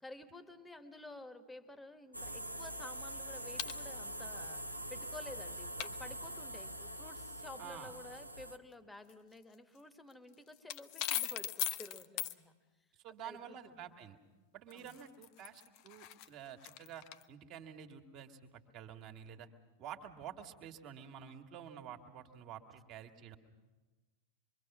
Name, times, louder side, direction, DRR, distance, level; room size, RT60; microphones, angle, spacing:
voice 1, 0.0-4.6 4.9-12.6 13.2-14.0 14.7-15.0, left 2 dB, 10° left, 11 dB, 1.4 m, -52 dB
sound 1, 2.1-8.6, right 1 dB, 90° right, 0.8 m, -44 dB
sound 2, 3.6-3.8 5.8-5.9 9.1-9.2 9.8-9.9 10.1-12.3 14.7-17.2, left 13 dB, 45° left, 0.7 m, -39 dB
voice 2, 7.6-7.9 13.0-14.2 14.5-19.5 19.8-23.4, right 9 dB, 40° right, 5 dB, 1.9 m, -49 dB
26.0 x 23.0 x 6.1 m, 1.3 s
figure-of-eight pair, 90°, 0 cm